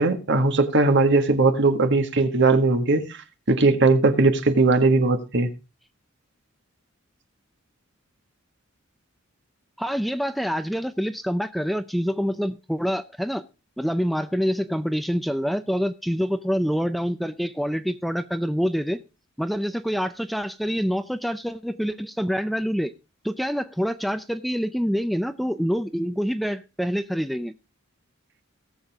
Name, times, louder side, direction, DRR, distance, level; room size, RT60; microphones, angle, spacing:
voice 1, 0.0-3.2 3.5-5.5, right 3 dB, 60° right, 1.7 m, -19 dB
voice 2, 9.8-13.4 13.8-19.0 19.4-22.9 23.2-27.5, equal, ahead, 0.5 m, -26 dB
18.0 x 7.3 x 3.5 m
head